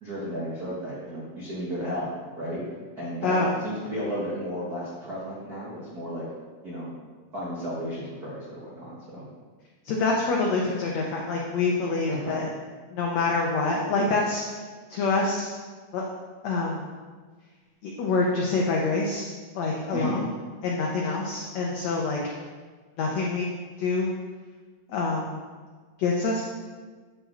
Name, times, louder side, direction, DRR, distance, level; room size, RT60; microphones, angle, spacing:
voice 1, 0.0-2.1 2.3-2.6 2.9-6.3 6.6-6.9 7.3-9.3 12.1-12.3 19.9-20.2, equal, 65° right, -8 dB, 0.9 m, -33 dB
voice 2, 3.2-3.5 9.8-12.5 12.9-14.4 14.9-15.5 15.9-16.0 16.4-16.9 17.8-20.2 20.6-22.2 23.0-23.5 23.8-24.1 24.9-25.4 26.0-26.4, left 3 dB, 85° left, -2 dB, 1.5 m, -26 dB
9.1 x 4.7 x 4.4 m, 1.5 s
omnidirectional pair, 4.1 m